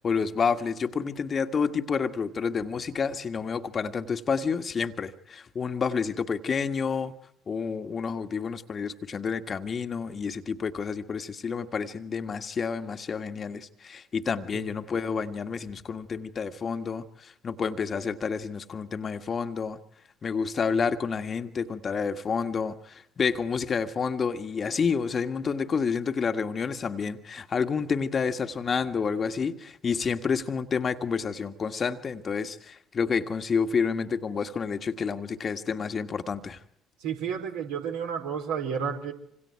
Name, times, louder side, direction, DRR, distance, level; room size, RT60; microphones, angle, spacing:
voice 1, 0.0-7.1 7.5-19.8 20.2-36.6, left 5 dB, 40° left, 8 dB, 1.7 m, -29 dB
voice 2, 37.0-39.1, right 7 dB, 65° right, 2 dB, 4.7 m, -31 dB
27.0 x 26.5 x 4.8 m, 0.72 s
figure-of-eight pair, 50°, 0 cm